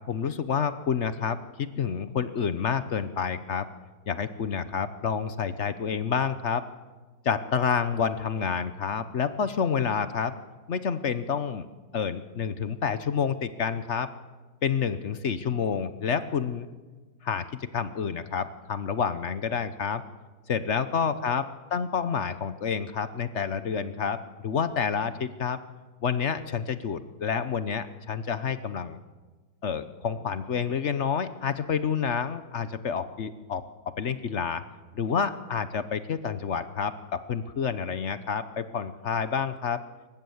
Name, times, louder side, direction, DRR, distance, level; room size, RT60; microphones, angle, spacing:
voice 1, 0.1-3.7 4.1-6.6 7.2-10.3 10.7-11.7 11.9-14.1 14.6-16.7 17.2-20.0 20.5-25.6 26.0-29.0 29.6-33.6 34.0-34.6 34.9-39.8, left 6 dB, 50° left, 12 dB, 1.0 m, -29 dB
26.5 x 15.0 x 7.9 m, 1.3 s
omnidirectional pair, 1.9 m